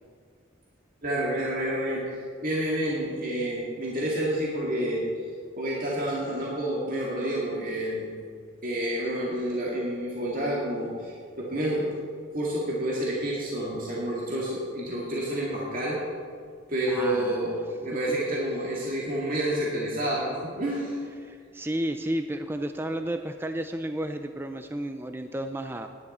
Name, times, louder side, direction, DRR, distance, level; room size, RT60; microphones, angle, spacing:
voice 1, 1.0-5.1 5.6-8.1 8.6-11.9 12.3-16.0 16.7-17.6 17.8-21.0, right 1 dB, 45° right, -5 dB, 2.1 m, -29 dB
voice 2, 16.9-17.4 21.2-25.9, right 1 dB, 10° right, 7 dB, 0.4 m, -32 dB
16.5 x 11.0 x 4.3 m, 2.1 s
head